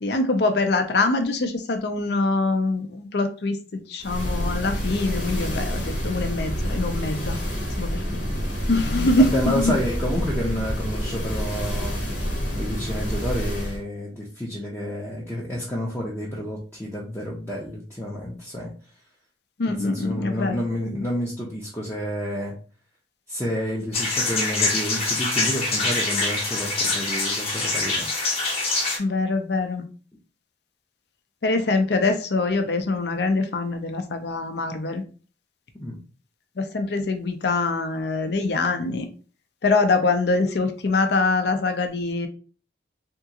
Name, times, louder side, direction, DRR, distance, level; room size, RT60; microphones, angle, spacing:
voice 1, 0.0-7.4 7.8-8.2 8.7-9.7 19.6-20.6 29.0-29.8 31.4-35.0 36.6-39.1 39.6-42.3, left 3 dB, 60° left, 6 dB, 0.5 m, -24 dB
sound 1, 4.0-13.8, equal, 85° left, 1.0 m, -28 dB
voice 2, 9.2-12.0 12.6-18.7 19.7-22.5 23.3-28.1 35.7-36.0, equal, 10° left, -6 dB, 0.6 m, -29 dB
sound 2, 23.9-29.0, left 3 dB, 30° left, 0.9 m, -24 dB
3.6 x 2.4 x 2.8 m, 0.37 s
head